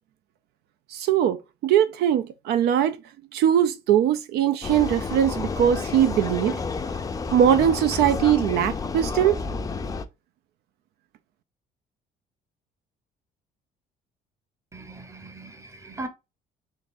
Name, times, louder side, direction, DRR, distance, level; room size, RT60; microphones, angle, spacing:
voice 1, 0.9-1.4 1.6-3.0 3.3-6.6 7.3-9.4, right 10 dB, 75° right, 0.4 m, -21 dB
Vehicle, 4.6-10.1, left 4 dB, 20° left, 0.4 m, -30 dB
voice 2, 14.7-16.1, right 2 dB, 15° right, 0.8 m, -39 dB
3.8 x 3.5 x 2.5 m
cardioid pair, 110°, 17 cm